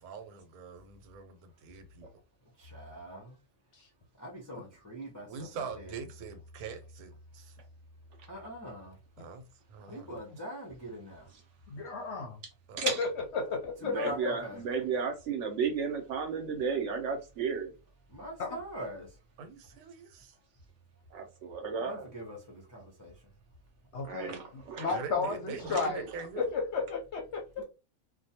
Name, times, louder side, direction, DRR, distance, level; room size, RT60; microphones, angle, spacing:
voice 1, 0.0-2.1 4.5-4.6 5.3-7.5 9.2-9.4 9.7-10.1 12.7-13.0 19.4-20.3 24.3-24.4 24.9-26.5, right 6 dB, 85° right, 1.1 m, -43 dB
voice 2, 2.6-3.4 4.2-5.9 8.3-9.0 9.9-11.3 13.8-14.6 18.1-19.2 21.8-23.3 27.6-27.7, equal, 30° left, 0.3 m, -43 dB
voice 3, 11.7-12.3 13.0-13.1 13.3-13.9 14.2-14.3 18.4-18.6 23.9-26.1 26.4-27.6, left 4 dB, 60° left, 0.7 m, -33 dB
voice 4, 13.8-17.7 21.1-22.1 24.0-25.0 25.6-25.8, right 6 dB, 65° right, 0.8 m, -33 dB
2.5 x 2.1 x 2.7 m
omnidirectional pair, 1.5 m